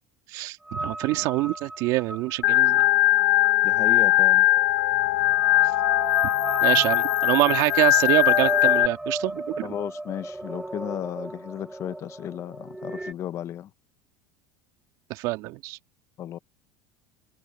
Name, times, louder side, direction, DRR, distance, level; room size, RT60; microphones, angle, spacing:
voice 1, 0.3-2.9 6.6-9.7 15.1-15.8, right 20 dB, 65° right, 2.0 m, -25 dB
sound 1, 0.7-13.1, right 2 dB, 10° right, 1.7 m, -35 dB
Organ, 2.4-8.9, left 15 dB, 85° left, 0.5 m, -20 dB
voice 2, 3.6-4.5 9.6-13.7 16.2-16.4, left 11 dB, 45° left, 1.0 m, -34 dB
supercardioid pair, 100°, 7 cm